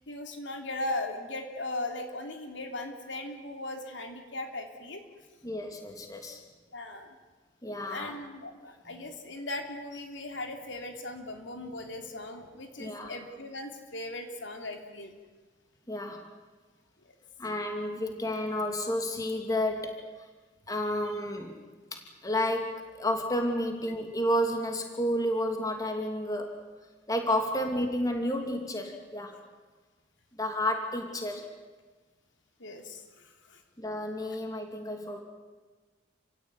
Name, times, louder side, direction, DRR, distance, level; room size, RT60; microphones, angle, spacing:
voice 1, 0.1-5.0 6.7-7.1 7.9-15.1 17.1-17.2 32.6-33.6, left 2 dB, 75° left, 4 dB, 3.2 m, -38 dB
voice 2, 5.4-6.4 7.6-8.2 12.8-13.1 15.9-16.2 17.4-20.0 20.7-21.6 21.9-26.5 27.1-29.4 30.4-31.5 33.8-35.2, left 1 dB, 20° left, 4 dB, 2.7 m, -31 dB
29.0 x 16.5 x 9.7 m, 1.3 s
head